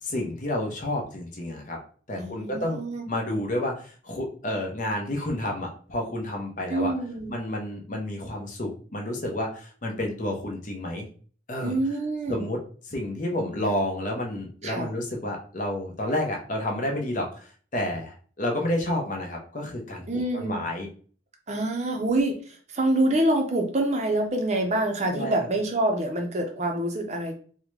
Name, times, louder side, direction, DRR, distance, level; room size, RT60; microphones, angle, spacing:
voice 1, 0.0-1.8 2.1-6.9 7.3-11.1 11.5-11.8 12.3-12.6 12.9-20.1 20.3-20.9 25.1-25.5, left 1 dB, 40° left, 0 dB, 0.7 m, -30 dB
voice 2, 2.2-3.0 6.7-7.4 11.6-12.4 14.6-14.9 20.1-20.7 21.5-27.3, right 1 dB, 35° right, 3 dB, 0.5 m, -26 dB
3.6 x 2.1 x 3.1 m, 0.43 s
head